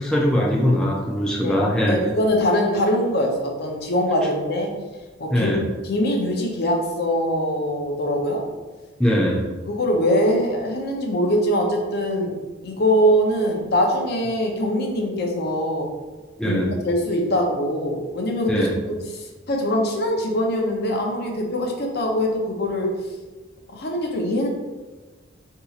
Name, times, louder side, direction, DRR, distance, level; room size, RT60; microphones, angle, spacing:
voice 1, 0.0-2.0 5.3-5.6 9.0-9.4 16.4-16.7 18.5-18.7, equal, 5° left, -4 dB, 0.3 m, -21 dB
voice 2, 1.9-4.7 5.2-5.6 5.8-8.4 9.7-12.4 12.6-15.9 16.4-18.7 19.1-22.9 23.7-24.5, equal, 55° left, 1 dB, 0.6 m, -22 dB
3.9 x 2.7 x 2.4 m, 1.3 s
head